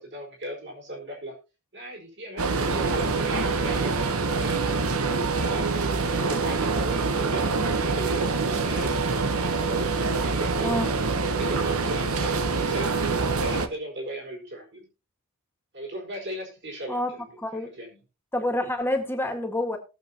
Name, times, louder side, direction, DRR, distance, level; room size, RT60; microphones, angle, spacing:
voice 1, 0.0-1.4 1.7-4.9 5.3-7.4 7.7-9.0 9.5-10.7 11.3-14.9 15.7-18.0, right 1 dB, 55° right, 0 dB, 4.6 m, -37 dB
sound 1, 2.4-13.7, right 4 dB, 70° right, 1.0 m, -25 dB
voice 2, 10.6-10.9 16.9-17.1 17.4-17.7 18.3-19.8, left 1 dB, 10° left, 4 dB, 1.7 m, -27 dB
19.0 x 7.4 x 2.9 m, 0.30 s
head